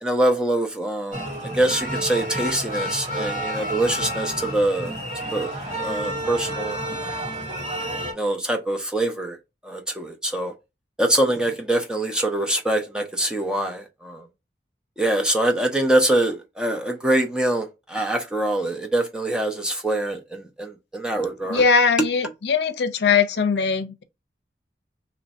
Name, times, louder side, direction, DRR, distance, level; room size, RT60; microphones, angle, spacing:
voice 1, 0.0-4.9 5.3-5.5 5.8-6.8 7.5-7.7 8.2-9.4 9.6-10.5 11.0-14.2 15.0-21.6, right 1 dB, 5° right, 0.6 m, -24 dB
sound 1, 1.1-8.1, equal, 45° right, 1.9 m, -30 dB
voice 2, 21.5-24.0, left 5 dB, 75° left, 0.5 m, -20 dB
3.0 x 2.6 x 4.1 m
head